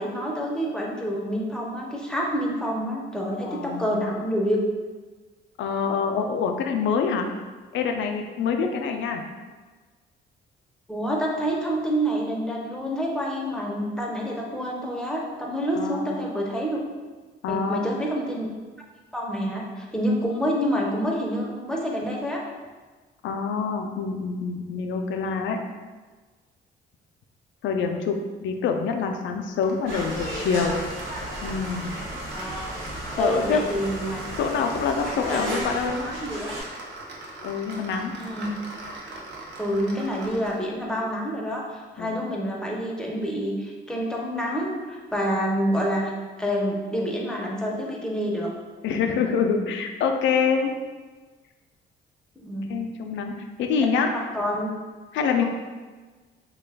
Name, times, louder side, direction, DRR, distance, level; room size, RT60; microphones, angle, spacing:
voice 1, 0.0-4.6 10.9-16.8 17.5-18.5 19.1-22.4 32.3-32.7 33.2-34.2 35.3-35.6 36.0-36.5 38.2-38.5 39.6-46.1 46.4-48.5 52.4-52.7 54.1-54.7, equal, 5° left, -2 dB, 0.6 m, -27 dB
voice 2, 3.4-4.0 5.6-7.3 7.7-9.2 15.8-16.2 17.4-17.8 23.2-25.6 27.6-30.7 31.4-32.0 33.1-33.6 34.4-36.0 37.4-38.1 42.0-42.2 48.8-50.7 52.7-53.3 53.6-54.1 55.1-55.4, left 5 dB, 75° left, 4 dB, 0.4 m, -26 dB
sound 1, 29.6-40.7, right 2 dB, 60° right, 0.6 m, -40 dB
sound 2, 29.9-36.6, equal, 85° right, 1.0 m, -35 dB
3.1 x 2.2 x 3.3 m, 1.3 s
cardioid pair, 90°, 20 cm